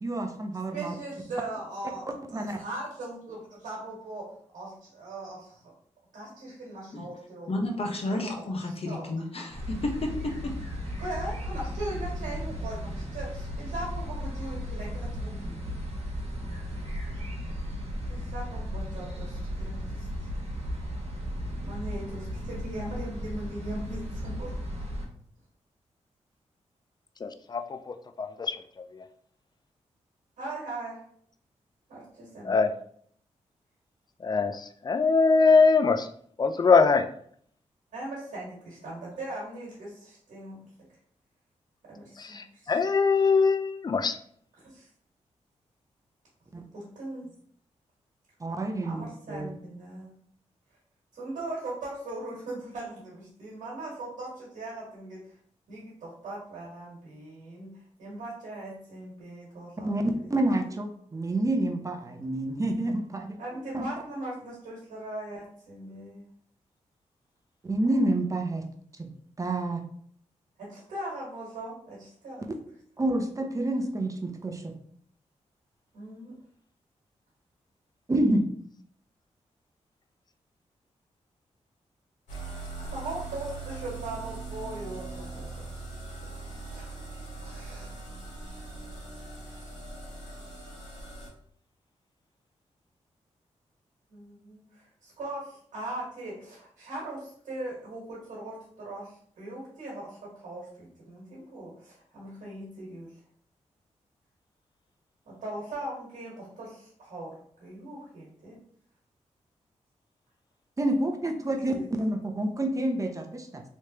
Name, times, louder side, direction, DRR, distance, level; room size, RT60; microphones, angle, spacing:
voice 1, 0.0-0.9 2.3-2.6 46.5-46.6 48.4-49.0 49.3-49.5 59.8-63.4 63.7-63.9 67.6-68.6 69.0-69.1 69.4-69.8 73.0-74.7 78.1-78.4 110.8-113.6, right 1 dB, 25° right, 4 dB, 0.7 m, -28 dB
voice 2, 0.7-5.7 6.1-7.5 8.1-9.1 11.0-15.7 18.1-20.3 21.6-24.7 30.4-31.0 31.9-32.6 37.9-40.6 41.8-42.8 44.6-44.9 46.7-47.3 48.8-50.1 51.1-55.3 55.7-60.3 60.6-60.8 63.4-66.2 70.6-72.5 75.9-76.3 82.9-85.7 86.5-87.0 87.4-87.9 94.1-103.2 105.2-108.6 111.7-112.2, right 2 dB, 85° right, -5 dB, 1.4 m, -40 dB
voice 3, 7.5-10.5, left 2 dB, 50° left, 2 dB, 0.9 m, -31 dB
sound 1, 9.5-25.1, equal, 55° right, 1.2 m, -35 dB
voice 4, 27.2-27.6 27.9-28.6 28.9-29.0 32.4-32.7 34.2-36.1 36.4-37.1 42.2-44.2, left 4 dB, 35° left, 8 dB, 0.4 m, -22 dB
sound 2, 82.3-91.3, right 3 dB, 90° left, 1.5 m, -40 dB
3.2 x 3.1 x 2.8 m, 0.62 s
cardioid pair, 55°, 13 cm